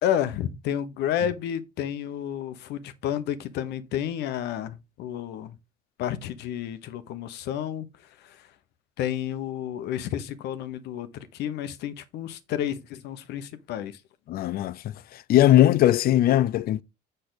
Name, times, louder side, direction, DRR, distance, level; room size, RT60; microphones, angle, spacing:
voice 1, 0.0-5.6 6.0-7.9 8.2-8.4 9.0-14.0, left 10 dB, 80° left, 1.1 m, -31 dB
voice 2, 14.3-16.8, left 13 dB, 65° left, 0.6 m, -20 dB
6.7 x 6.5 x 4.0 m
cardioid pair, 110°, 17 cm